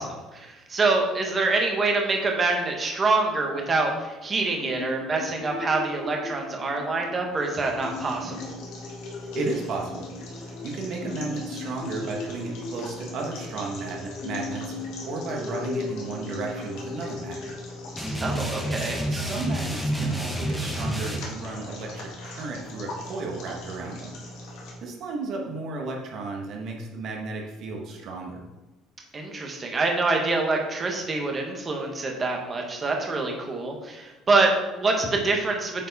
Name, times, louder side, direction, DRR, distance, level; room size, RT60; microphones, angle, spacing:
voice 1, 0.0-8.5 18.2-19.0 29.1-35.9, right 3 dB, 20° right, 1 dB, 1.2 m, -26 dB
sound 1, 4.6-19.0, left 3 dB, 30° left, 1.0 m, -38 dB
sound 2, 7.3-24.7, left 1 dB, 70° left, 2.0 m, -41 dB
voice 2, 9.3-10.1 10.4-17.5 19.1-24.2 24.8-28.4, right 3 dB, 45° right, 0 dB, 1.2 m, -34 dB
sound 3, 18.0-21.2, right 1 dB, ahead, 1.0 m, -29 dB
8.7 x 4.6 x 4.1 m, 1.1 s
cardioid pair, 170°, 0 cm